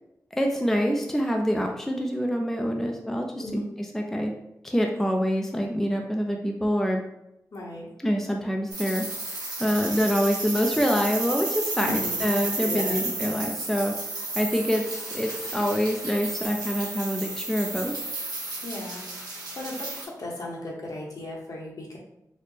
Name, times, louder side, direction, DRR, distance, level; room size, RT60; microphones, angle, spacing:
voice 1, 0.3-4.3 4.6-7.0 8.0-9.0 9.6-13.9 14.3-17.9, equal, 5° left, 2 dB, 0.4 m, -26 dB
voice 2, 7.5-7.9 11.8-12.3 12.6-13.0 18.6-22.0, left 1 dB, 65° left, -2 dB, 0.9 m, -36 dB
sound 1, 8.7-20.1, right 2 dB, 85° right, 1.2 m, -32 dB
4.1 x 2.1 x 3.2 m, 0.84 s
wide cardioid pair, 115°, 7 cm